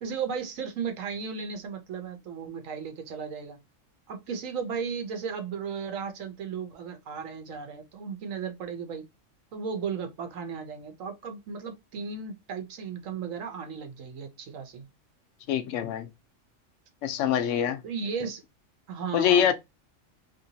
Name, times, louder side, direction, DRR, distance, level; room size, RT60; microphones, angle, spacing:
voice 1, 0.0-3.6 4.1-9.1 9.5-14.8 17.8-18.4 18.9-19.5, right 6 dB, 85° right, 1.1 m, -35 dB
voice 2, 15.5-16.1 17.0-17.8 19.1-19.5, left 9 dB, 75° left, 0.9 m, -24 dB
2.9 x 2.8 x 2.7 m
omnidirectional pair, 1.3 m